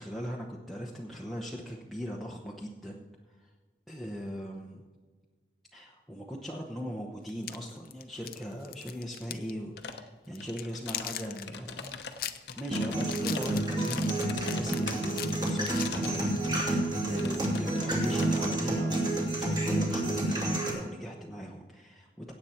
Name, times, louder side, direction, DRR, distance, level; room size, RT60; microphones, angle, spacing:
voice 1, 0.0-3.0 3.4-3.5 3.9-4.8 5.7-12.0 12.6-14.1 14.5-16.3 17.0-22.3, equal, ahead, -3 dB, 0.9 m, -39 dB
sound 1, 7.3-9.5 9.8-9.9 10.3-16.4, left 11 dB, 55° left, 0.6 m, -40 dB
sound 2, 9.8-10.1 10.4-11.1 11.4-15.1 15.6-16.2 16.4-16.8 17.2-18.6, left 5 dB, 80° left, 0.9 m, -42 dB
sound 3, 12.7-20.7, right 1 dB, 25° right, 2.5 m, -29 dB
17.0 x 7.8 x 4.4 m, 1.4 s
head